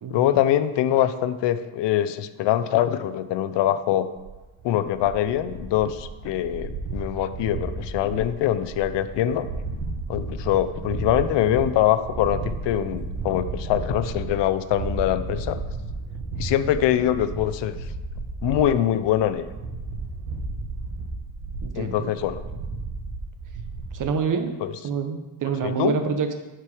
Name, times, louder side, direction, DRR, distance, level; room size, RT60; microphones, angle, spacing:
voice 1, 0.1-4.1 4.6-9.5 10.1-15.6 16.4-17.8 18.4-19.5 21.7-22.4 24.6-24.7 25.6-26.0, left 11 dB, 60° left, 13 dB, 0.6 m, -23 dB
sound 1, 4.2-24.0, right 3 dB, 85° right, 2.0 m, -33 dB
voice 2, 21.6-22.1 23.9-24.5 24.8-26.3, right 6 dB, 40° right, 6 dB, 1.0 m, -27 dB
10.0 x 4.6 x 4.9 m, 1.1 s
cardioid pair, 135°, 49 cm